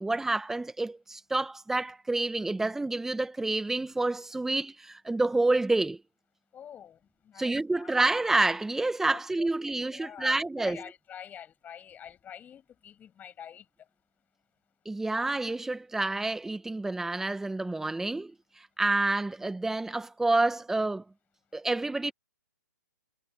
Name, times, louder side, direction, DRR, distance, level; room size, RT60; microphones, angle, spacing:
voice 1, 0.0-6.0 7.4-10.8 14.8-21.0 21.5-22.1, right 2 dB, 5° right, 1.5 m, -28 dB
voice 2, 6.5-7.9 9.1-13.9, left 9 dB, 15° left, 8.0 m, -47 dB
figure-of-eight pair, 125°, 10 cm